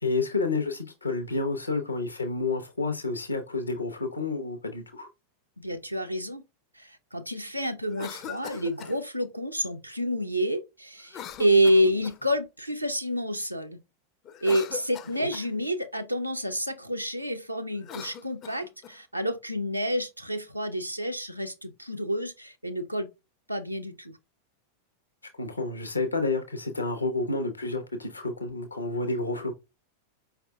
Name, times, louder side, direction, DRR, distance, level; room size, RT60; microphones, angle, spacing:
voice 1, 0.0-5.1 15.2-15.3 25.4-29.5, left 3 dB, 80° left, 0.8 m, -30 dB
voice 2, 5.6-6.4 6.8-13.8 14.4-23.1 23.5-24.1, equal, 90° right, 0.6 m, -28 dB
Cough, 7.9-9.0 11.1-12.3 14.2-15.5 17.7-19.0, left 9 dB, 35° left, 0.4 m, -41 dB
4.9 x 3.5 x 2.3 m
figure-of-eight pair, 90°, 0 cm